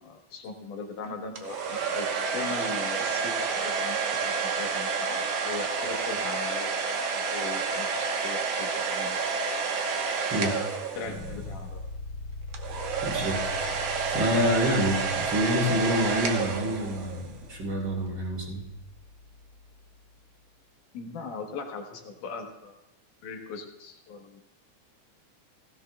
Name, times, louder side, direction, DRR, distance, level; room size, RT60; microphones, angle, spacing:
voice 1, 0.0-9.2 10.9-11.8 20.9-22.7 23.2-24.4, left 4 dB, 80° left, 3 dB, 2.7 m, -39 dB
sound 1, 1.4-11.5 12.5-17.3, right 5 dB, 60° right, 2.0 m, -29 dB
sound 2, 10.9-19.9, left 2 dB, 50° left, 3.1 m, -42 dB
voice 2, 13.0-18.6, equal, 40° right, -4 dB, 3.9 m, -28 dB
17.0 x 15.5 x 2.3 m, 0.84 s
omnidirectional pair, 3.6 m